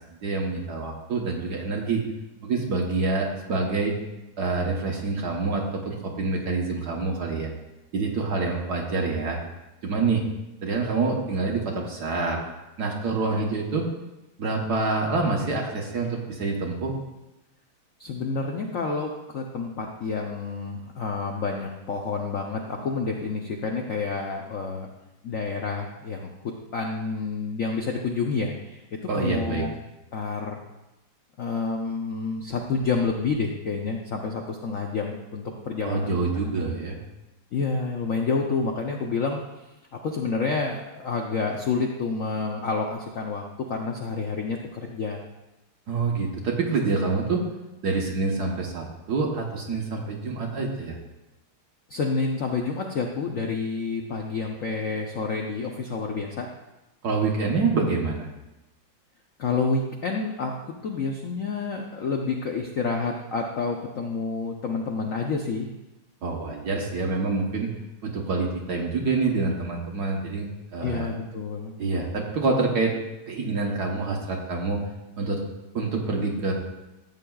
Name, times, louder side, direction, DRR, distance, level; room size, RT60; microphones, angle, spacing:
voice 1, 0.2-2.0 2.4-3.9 4.4-7.5 7.9-9.4 9.8-10.2 10.6-12.4 12.8-13.8 14.4-17.0 29.1-29.6 35.8-37.0 45.9-47.4 47.8-51.0 57.0-58.3 66.2-67.7 68.0-71.1 71.8-72.9 73.3-74.8 75.2-75.4 75.7-76.5, right 3 dB, 55° right, 0 dB, 1.4 m, -26 dB
voice 2, 18.0-24.9 25.2-29.7 30.1-30.6 31.4-36.5 37.5-39.4 40.0-43.4 43.7-45.3 51.9-56.5 59.4-65.7 70.8-71.7, left 4 dB, 85° left, 1 dB, 0.7 m, -29 dB
13.5 x 8.2 x 2.3 m, 0.99 s
omnidirectional pair, 2.4 m